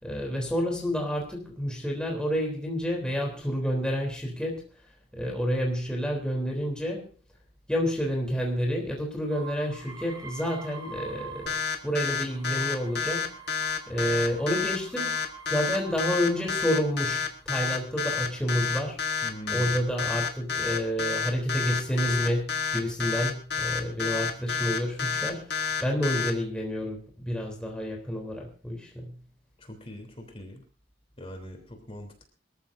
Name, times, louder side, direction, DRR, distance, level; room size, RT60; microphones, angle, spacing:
voice 1, 0.0-4.6 5.1-7.1 7.7-11.6 11.8-13.3 13.9-19.0 19.5-29.1, equal, 5° left, -1 dB, 3.4 m, -29 dB
sound 1, 9.3-11.8 12.2-16.8 17.5-18.1, right 3 dB, 25° right, 2.1 m, -46 dB
sound 2, 11.5-26.3, left 5 dB, 65° left, 1.8 m, -29 dB
voice 2, 19.2-19.8 29.6-30.6 31.2-32.2, equal, 30° left, 4 dB, 3.5 m, -42 dB
25.0 x 14.0 x 2.7 m, 0.37 s
head